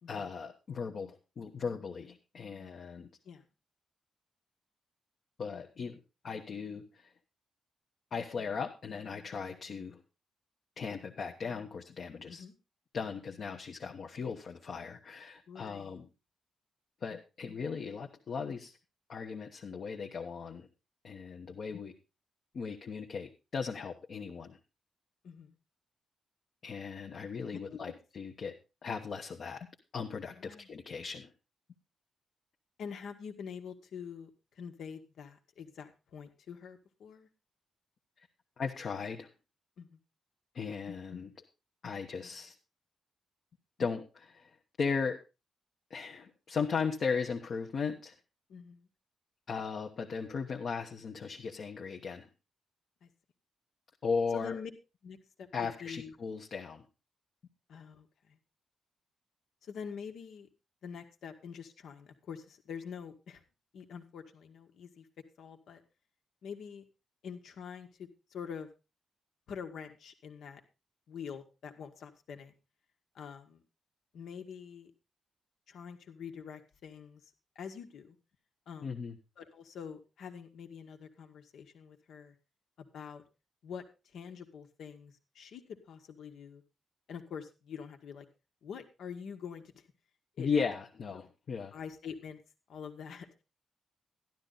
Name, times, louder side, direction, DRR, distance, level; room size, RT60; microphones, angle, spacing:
voice 1, 0.1-3.1 5.4-6.0 6.2-7.1 8.1-10.0 10.8-12.4 12.9-16.1 17.0-18.8 19.1-20.7 21.0-21.9 22.5-24.6 26.6-28.5 28.8-29.7 29.9-31.3 38.6-39.3 40.5-41.3 41.8-42.5 43.8-45.2 45.9-48.1 49.5-52.3 54.0-54.6 55.5-56.8 78.8-79.2 90.4-91.7, left 5 dB, 45° left, 2 dB, 1.0 m, -37 dB
voice 2, 15.5-16.0 25.2-25.6 27.7-27.8 30.3-30.7 32.8-34.3 34.6-37.3 39.8-40.0 48.5-48.9 53.0-53.1 54.3-54.7 55.0-56.1 57.7-58.4 59.6-60.5 60.8-63.4 63.7-65.1 65.4-65.8 66.4-66.9 67.2-68.7 69.5-70.6 71.1-72.5 73.2-73.6 74.1-74.9 75.7-78.2 78.7-79.0 79.4-82.4 82.8-83.2 83.6-83.8 84.1-85.6 85.9-86.6 87.1-88.3 88.6-89.9 90.4-90.5 91.7-92.4 92.7-93.3, left 7 dB, 75° left, 6 dB, 1.7 m, -45 dB
12.0 x 12.0 x 4.0 m, 0.28 s
wide cardioid pair, 175°, 0 cm